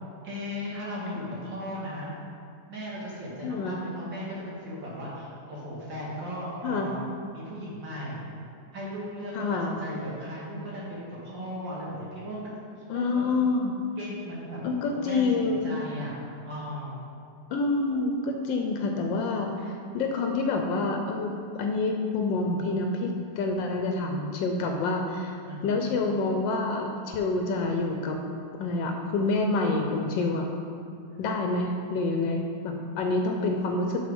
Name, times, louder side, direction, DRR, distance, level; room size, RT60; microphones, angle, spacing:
voice 1, 0.2-2.1 2.7-8.3 8.7-12.5 12.9-13.2 14.0-14.6 14.9-16.2 16.5-16.9 25.5-25.9, equal, 80° right, -6 dB, 2.7 m, -37 dB
voice 2, 3.4-3.8 6.6-6.9 9.3-9.8 12.9-13.8 14.6-15.8 17.5-25.4 25.6-28.2 28.5-30.4 31.2-34.0, left 3 dB, 85° left, 3 dB, 1.4 m, -27 dB
6.4 x 6.4 x 5.2 m, 2.4 s
omnidirectional pair, 2.0 m